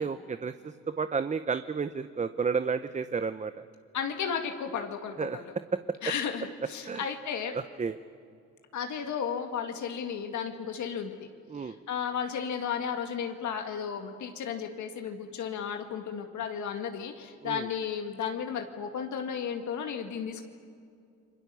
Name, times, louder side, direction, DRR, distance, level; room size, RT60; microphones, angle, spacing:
voice 1, 0.0-3.5 5.2-5.4 6.8-7.1 7.5-8.0 11.5-11.8 17.4-17.7, right 5 dB, 25° right, 11 dB, 0.7 m, -32 dB
voice 2, 3.9-5.5 6.0-7.6 8.7-11.3 11.5-20.4, left 7 dB, 75° left, 5 dB, 2.2 m, -34 dB
30.0 x 22.5 x 7.0 m, 2.4 s
cardioid pair, 90°, 30 cm